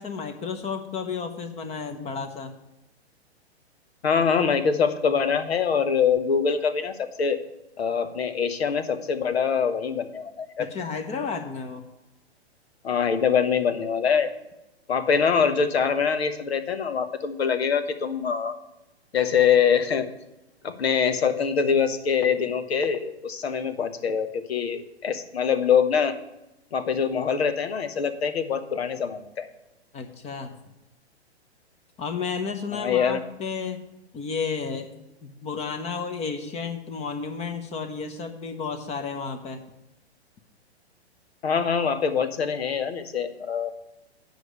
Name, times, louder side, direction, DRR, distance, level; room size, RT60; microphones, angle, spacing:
voice 1, 0.0-2.5 10.6-11.9 29.9-30.5 32.0-33.8 34.1-34.9 35.2-39.6, left 5 dB, 20° left, 8 dB, 0.9 m, -32 dB
voice 2, 4.0-7.4 7.8-10.7 12.8-14.3 14.9-18.5 19.1-20.1 20.6-26.1 26.7-29.5 32.7-33.2 41.4-43.7, left 6 dB, 70° left, 10 dB, 1.2 m, -24 dB
9.5 x 5.3 x 8.1 m, 0.92 s
figure-of-eight pair, 115°, 33 cm